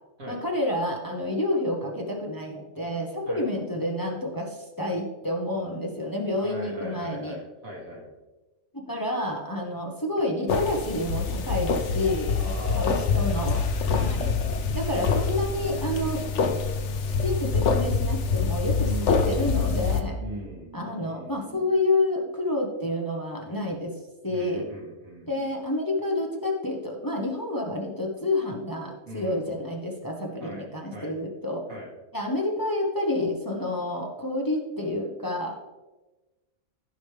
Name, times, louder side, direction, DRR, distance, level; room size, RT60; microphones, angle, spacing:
voice 1, 0.3-7.4 8.7-13.6 13.9-14.3 14.7-16.2 17.2-18.9 19.3-20.1 20.7-23.9 24.2-24.6 25.3-31.6 32.1-35.7, left 1 dB, 15° left, 0 dB, 1.1 m, -29 dB
voice 2, 6.4-8.1 12.3-13.3 13.9-16.1 18.8-19.3 19.7-21.7 23.4-23.9 24.2-25.5 29.1-29.6 30.4-30.6 30.9-31.1 31.7-31.9, right 1 dB, 85° right, -3 dB, 2.8 m, -41 dB
sound 1, 10.5-20.0, left 5 dB, 60° left, 1.1 m, -25 dB
15.5 x 5.3 x 3.4 m, 1.1 s
omnidirectional pair, 1.4 m